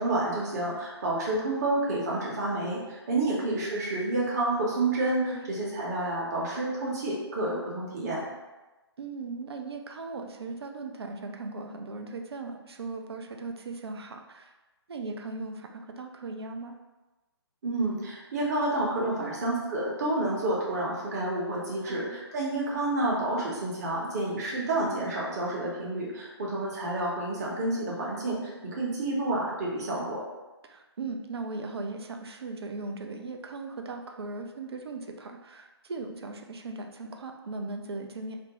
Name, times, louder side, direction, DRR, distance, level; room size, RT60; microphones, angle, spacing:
voice 1, 0.0-8.2 17.6-30.2, right 2 dB, 35° right, -4 dB, 0.8 m, -29 dB
voice 2, 5.3-5.6 9.0-14.5 14.9-16.7 19.2-19.5 21.9-22.2 30.6-38.4, right 3 dB, 65° right, 4 dB, 0.4 m, -38 dB
2.5 x 2.1 x 2.9 m, 1.1 s
figure-of-eight pair, 135°, 14 cm